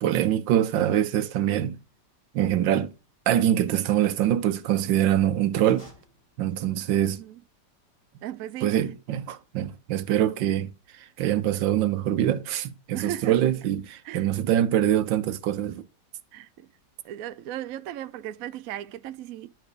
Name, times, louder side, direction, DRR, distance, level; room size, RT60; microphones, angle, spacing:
voice 1, 0.0-1.8 2.3-2.9 3.3-5.9 6.4-7.2 8.6-15.9, right 11 dB, 90° right, 1.5 m, -24 dB
sound 1, 5.5-6.9, equal, 40° left, 6.8 m, -53 dB
voice 2, 7.1-7.4 8.2-8.8 12.9-13.5 14.0-14.3 16.3-16.7 17.0-19.5, right 12 dB, 70° right, 0.8 m, -36 dB
11.5 x 4.7 x 4.8 m
omnidirectional pair, 2.0 m